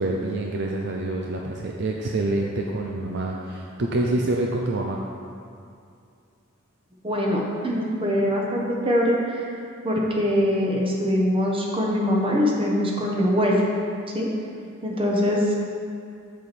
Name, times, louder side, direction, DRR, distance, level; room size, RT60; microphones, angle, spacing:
voice 1, 0.0-5.1, right 2 dB, 55° right, 0 dB, 0.6 m, -26 dB
voice 2, 7.0-9.4 9.8-13.6 14.1-14.3 14.8-15.6, equal, 25° right, -2 dB, 1.2 m, -23 dB
7.5 x 7.0 x 4.3 m, 2.4 s
head